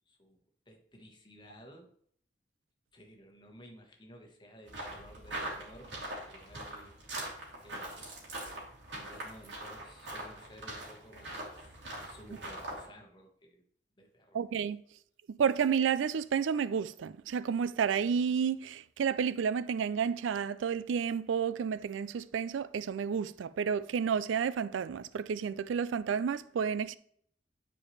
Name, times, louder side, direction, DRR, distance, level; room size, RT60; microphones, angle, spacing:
voice 1, 0.1-0.4 0.7-1.9 2.9-6.9 7.6-8.1 8.9-13.6 14.0-14.5, equal, 25° left, 1.3 m, -55 dB
sound 1, 4.7-12.9, right 1 dB, 70° right, 2.6 m, -42 dB
voice 2, 14.3-14.8 15.3-27.0, right 7 dB, 85° right, 0.4 m, -31 dB
9.6 x 4.6 x 3.2 m
head